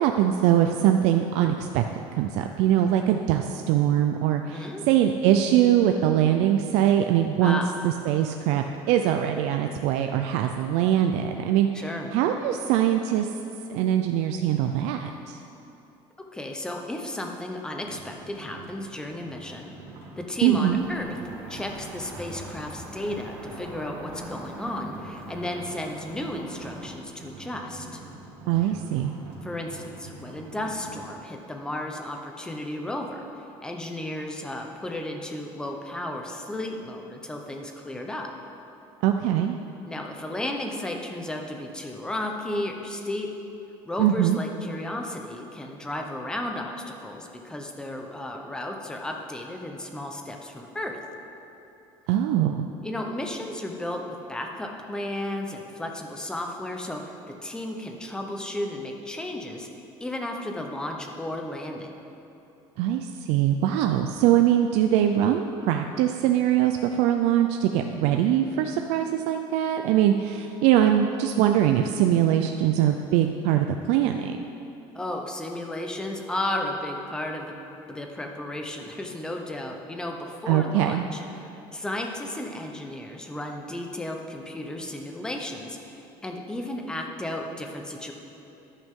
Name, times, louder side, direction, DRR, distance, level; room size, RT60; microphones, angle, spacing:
voice 1, 0.0-1.8 2.2-11.8 12.1-13.3 13.7-15.4 20.4-20.8 28.5-29.1 39.0-39.6 44.0-44.4 52.1-52.7 62.8-74.3 80.5-81.1, right 11 dB, 85° right, 5 dB, 0.5 m, -22 dB
voice 2, 7.4-7.7 11.7-12.1 16.3-19.7 20.2-21.2 21.5-28.0 29.4-38.3 39.8-43.3 43.8-51.0 52.8-57.0 57.3-61.9 74.9-77.5 77.9-88.1, left 1 dB, 5° left, 2 dB, 0.8 m, -34 dB
sound 1, 17.8-31.0, right 3 dB, 60° right, 2.3 m, -45 dB
Cricket / Motor vehicle (road), 20.7-27.0, right 1 dB, 15° right, 1.3 m, -42 dB
13.5 x 11.0 x 3.7 m, 2.9 s
cardioid pair, 175°, 11 cm